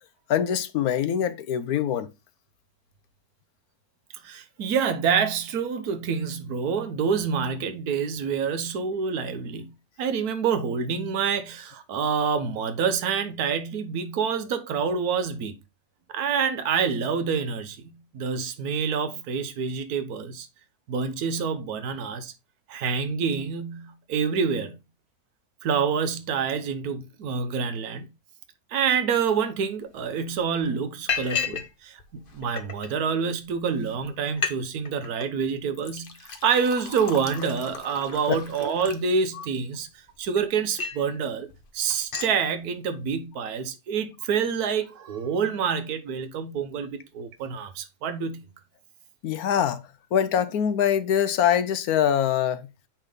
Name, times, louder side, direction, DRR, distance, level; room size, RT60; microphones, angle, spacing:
voice 1, 0.3-2.1 38.3-38.4 39.3-39.5 49.2-49.8 50.1-52.7, left 9 dB, 70° left, 1.0 m, -24 dB
voice 2, 4.2-9.7 10.0-15.5 16.1-20.5 20.9-22.3 22.7-24.7 25.6-28.1 28.7-39.9 40.2-41.5 41.7-48.5, right 6 dB, 65° right, 1.4 m, -27 dB
Liquid, 29.9-30.0 30.3-30.6 31.1-31.7 32.0-32.9 33.5-33.6 33.9-34.0 34.3-34.6 34.8-35.3 35.7-39.6 40.1-41.1 41.5-41.6 41.9-42.4, left 6 dB, 45° left, 0.8 m, -34 dB
8.9 x 3.8 x 3.7 m
omnidirectional pair, 1.9 m